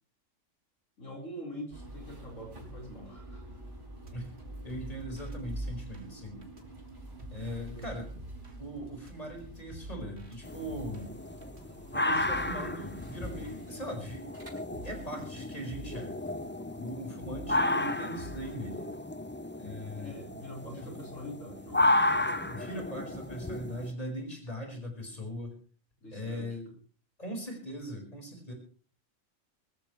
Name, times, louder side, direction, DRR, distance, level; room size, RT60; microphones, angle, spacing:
voice 1, 1.0-3.4 7.7-7.9 17.8-18.2 19.9-22.7 26.0-26.6, equal, 80° left, 1 dB, 4.7 m, -45 dB
sound 1, 1.7-15.7, right 1 dB, 40° right, 5.4 m, -47 dB
sound 2, 4.1-13.7 14.2-14.4 14.7-15.1 15.5-18.7, right 3 dB, 55° right, 2.7 m, -48 dB
voice 2, 4.6-6.4 7.3-8.1 8.6-11.1 11.9-14.3 14.8-16.1 16.8-18.9 19.6-20.2 20.8-20.9 22.1-22.2 22.5-25.5 26.1-26.7 27.2-28.5, equal, 30° left, 3 dB, 4.8 m, -40 dB
sound 3, 10.4-23.9, left 1 dB, 10° left, 0.6 m, -33 dB
23.0 x 14.0 x 3.2 m, 0.40 s
omnidirectional pair, 1.3 m